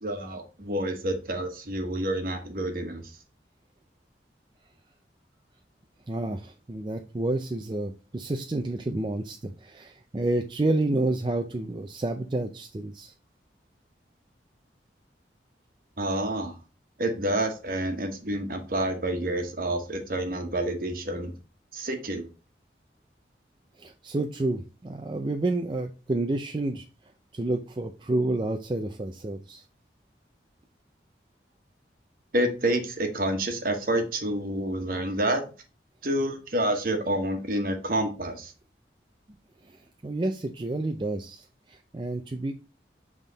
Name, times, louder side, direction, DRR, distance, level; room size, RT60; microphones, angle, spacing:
voice 1, 0.0-3.1 16.0-16.5 17.0-21.3 21.7-22.2 32.3-35.4 36.0-38.5, right 1 dB, 55° right, 5 dB, 1.2 m, -28 dB
voice 2, 6.1-13.1 23.8-26.9 27.3-29.6 39.6-42.5, right 2 dB, 25° right, 5 dB, 0.4 m, -29 dB
7.4 x 3.6 x 3.9 m, 0.34 s
head